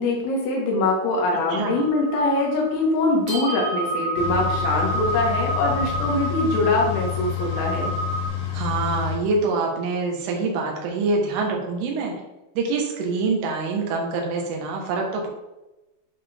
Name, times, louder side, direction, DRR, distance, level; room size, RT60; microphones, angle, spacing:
voice 1, 0.0-7.9, left 2 dB, 85° left, -2 dB, 4.7 m, -23 dB
sound 1, 1.6-8.3, right 2 dB, 55° right, 4.2 m, -30 dB
sound 2, 4.1-9.2, left 10 dB, 65° left, 4.4 m, -29 dB
voice 2, 8.5-12.1 12.6-15.3, right 3 dB, 75° right, 0 dB, 3.9 m, -25 dB
11.0 x 4.8 x 3.6 m, 1.0 s
omnidirectional pair, 5.8 m